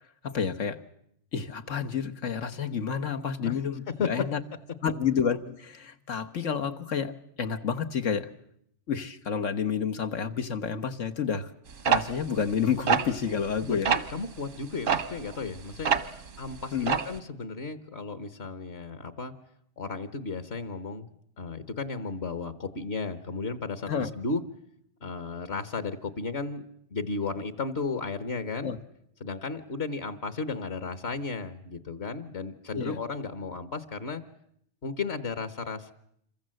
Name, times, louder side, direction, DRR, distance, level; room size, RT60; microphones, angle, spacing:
voice 1, 0.2-0.8 1.3-4.4 4.8-8.3 8.9-11.5 11.8-13.9 16.7-17.0 23.9-24.1 28.6-28.8 32.7-33.0, left 7 dB, 90° left, 6 dB, 1.7 m, -30 dB
sound 1, 11.9-13.6 13.9-14.1 14.9-16.3 16.5-17.2, right 8 dB, 85° right, 1.6 m, -26 dB
voice 2, 13.6-15.9 16.4-19.3 19.8-21.1 21.4-24.4 25.0-28.7 29.2-34.2 34.8-35.9, left 4 dB, 60° left, 12 dB, 1.5 m, -34 dB
27.0 x 23.5 x 7.7 m, 0.72 s
omnidirectional pair, 1.2 m